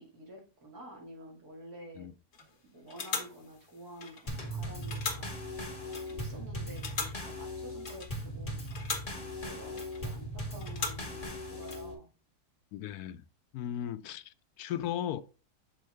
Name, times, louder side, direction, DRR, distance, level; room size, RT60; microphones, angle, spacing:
voice 1, 0.0-2.1 2.6-8.6 9.1-12.1, right 1 dB, 85° right, 2.6 m, -50 dB
sound 1, 2.3-2.5 2.9-4.5 4.8-6.4 6.8-8.4 8.6-10.2 10.6-11.8, left 4 dB, 55° left, 1.5 m, -41 dB
Drum kit / Snare drum / Bass drum, 4.3-11.9, equal, 35° left, 1.8 m, -39 dB
voice 2, 12.7-13.2 13.5-15.2, left 10 dB, 80° left, 1.1 m, -36 dB
7.4 x 4.6 x 3.2 m
omnidirectional pair, 1.6 m